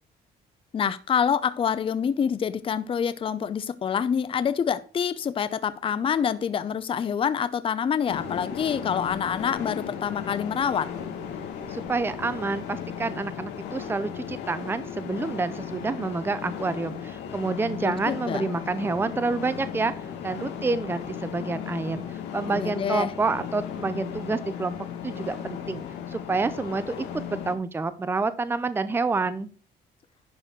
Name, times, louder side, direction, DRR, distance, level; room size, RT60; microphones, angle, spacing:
voice 1, 0.7-10.9 17.8-18.4 22.5-23.1, left 7 dB, 30° left, 0.6 m, -26 dB
sound 1, 8.1-27.5, left 8 dB, 85° left, 2.0 m, -36 dB
voice 2, 11.7-19.9 20.2-24.7 25.0-29.5, right 3 dB, 15° right, 0.6 m, -28 dB
11.0 x 4.2 x 6.3 m
cardioid pair, 110°, 17 cm